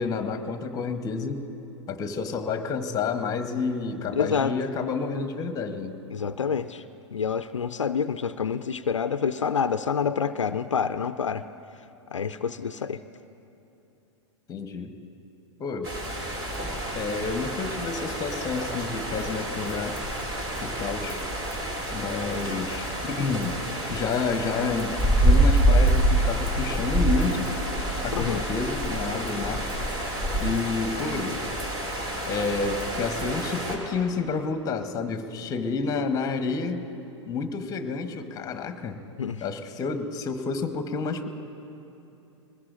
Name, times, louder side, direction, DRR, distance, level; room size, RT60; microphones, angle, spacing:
voice 1, 0.0-1.4 1.9-6.0 14.5-14.9 15.6-15.9 16.9-20.0 20.6-21.2 21.9-23.6 23.9-25.0 25.2-27.5 28.0-29.9 30.4-31.4 32.3-36.8 37.3-39.0 39.4-41.3, left 4 dB, 20° left, 9 dB, 1.0 m, -29 dB
voice 2, 4.1-4.6 6.1-6.8 7.1-11.4 12.1-13.0 28.1-28.4 39.2-39.4, left 6 dB, 80° left, 12 dB, 0.4 m, -27 dB
sound 1, 15.8-33.8, right 1 dB, 30° right, 2.5 m, -27 dB
22.0 x 19.5 x 2.5 m, 3.0 s
figure-of-eight pair, 100°, 16 cm